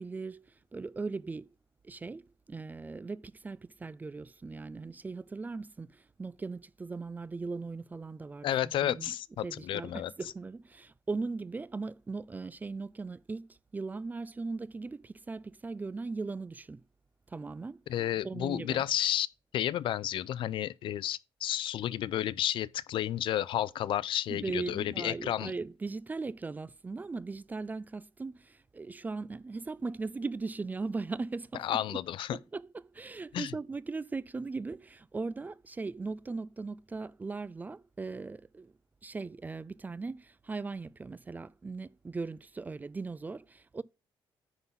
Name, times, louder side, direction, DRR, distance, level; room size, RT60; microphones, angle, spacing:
voice 1, 0.0-1.5 1.8-9.1 9.4-16.8 17.3-17.8 18.2-18.8 24.3-31.8 32.3-38.7 39.0-43.8, right 3 dB, 20° right, 0.3 m, -39 dB
voice 2, 8.4-10.1 17.9-19.3 19.5-25.5 31.6-32.4 33.3-33.5, left 12 dB, 70° left, 0.4 m, -31 dB
9.7 x 3.8 x 5.6 m
cardioid pair, 125°, 9 cm